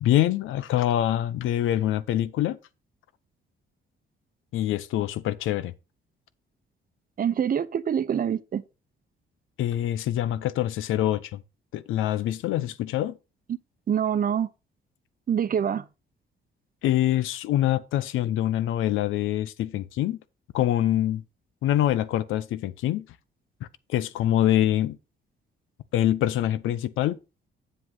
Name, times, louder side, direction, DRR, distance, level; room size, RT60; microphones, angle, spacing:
voice 1, 0.0-2.6 4.5-5.7 9.6-11.4 11.7-13.2 16.8-20.2 20.5-21.2 21.6-23.1 23.9-25.0 25.9-27.2, left 12 dB, 85° left, 0.8 m, -25 dB
voice 2, 7.2-8.6 13.9-14.5 15.3-15.8, right 8 dB, 45° right, 0.8 m, -25 dB
7.7 x 7.7 x 3.9 m
cardioid pair, 90°, 20 cm